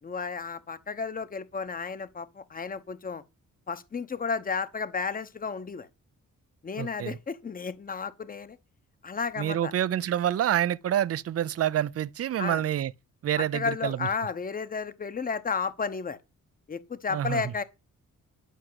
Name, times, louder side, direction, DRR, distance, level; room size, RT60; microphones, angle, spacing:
voice 1, 0.0-3.2 3.7-5.9 6.6-8.6 9.0-9.7 12.4-12.6 13.4-16.2 16.7-17.6, left 5 dB, 30° left, 1.0 m, -33 dB
voice 2, 6.8-7.2 9.4-12.9 13.2-14.1 17.1-17.4, right 11 dB, 50° right, 0.5 m, -27 dB
11.0 x 6.1 x 7.7 m
wide cardioid pair, 150°, 31 cm